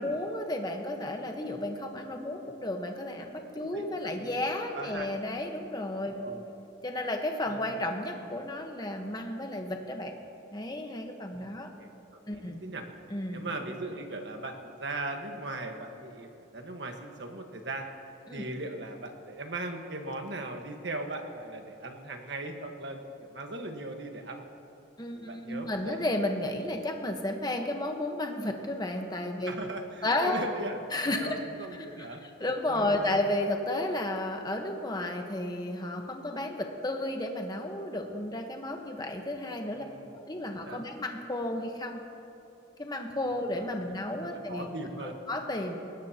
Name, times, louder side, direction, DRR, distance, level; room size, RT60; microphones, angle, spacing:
voice 1, 0.0-6.2 6.8-10.1 10.5-11.7 12.3-12.6 13.1-13.4 18.3-18.4 25.0-29.5 30.0-30.4 30.9-31.4 31.7-32.1 32.4-39.9 40.3-42.0 42.8-44.7 45.0-45.8, left 1 dB, 20° left, 3 dB, 1.2 m, -32 dB
voice 2, 3.7-4.4 4.7-5.1 6.1-6.4 7.5-7.7 11.4-11.5 11.8-11.9 12.3-12.8 13.3-17.9 18.3-23.0 23.3-24.5 25.1-26.0 29.5-33.1 39.7-40.2 40.6-40.8 43.7-43.8 44.2-45.1, right 2 dB, 65° right, 4 dB, 1.5 m, -39 dB
21.0 x 18.5 x 2.9 m, 2.8 s
head